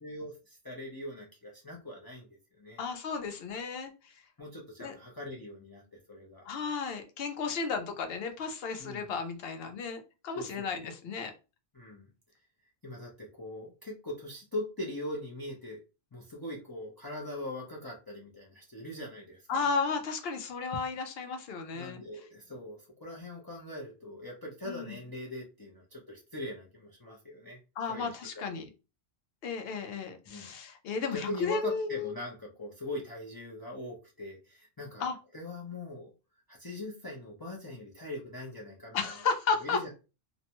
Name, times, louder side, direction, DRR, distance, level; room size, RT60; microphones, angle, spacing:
voice 1, 0.0-2.3 2.6-2.8 4.4-6.5 8.8-9.1 10.3-10.7 11.1-11.2 11.7-12.1 12.8-15.8 16.1-19.6 21.7-27.6 27.9-28.7 30.3-30.5 31.1-35.1 35.3-36.1 36.5-39.1 39.6-39.9, left 1 dB, 30° left, -2 dB, 0.4 m, -41 dB
voice 2, 2.8-4.1 4.8-4.9 6.5-11.3 19.5-22.0 24.7-25.0 27.8-28.7 29.4-32.2 35.0-35.2 38.9-39.8, left 5 dB, 70° left, 6 dB, 0.7 m, -34 dB
2.5 x 2.1 x 2.8 m, 0.31 s
omnidirectional pair, 1.1 m